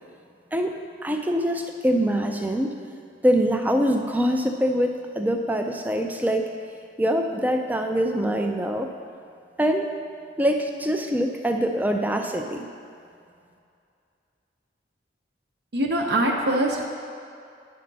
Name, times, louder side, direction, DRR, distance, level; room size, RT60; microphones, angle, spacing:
voice 1, 1.0-2.8 3.2-6.5 7.0-8.9 9.6-9.9 10.4-12.7, equal, 10° right, 4 dB, 0.4 m, -24 dB
voice 2, 15.7-16.9, right 1 dB, 60° right, -1 dB, 0.7 m, -23 dB
10.0 x 5.6 x 4.0 m, 2.4 s
head